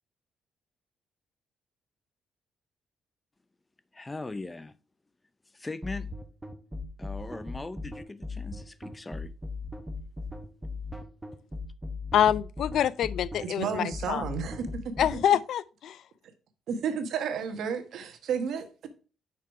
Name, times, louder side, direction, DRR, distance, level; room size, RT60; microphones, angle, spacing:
voice 1, 3.9-4.7 5.5-6.1 7.0-9.3, left 2 dB, 20° left, 0.5 m, -39 dB
sound 1, 5.8-15.2, left 3 dB, 15° right, 1.0 m, -37 dB
voice 2, 12.1-14.2 15.0-16.0, left 10 dB, 75° left, 0.3 m, -26 dB
voice 3, 13.4-14.8 16.7-18.9, right 6 dB, 70° right, 1.1 m, -32 dB
5.9 x 4.6 x 4.6 m
cardioid pair, 90°, 0 cm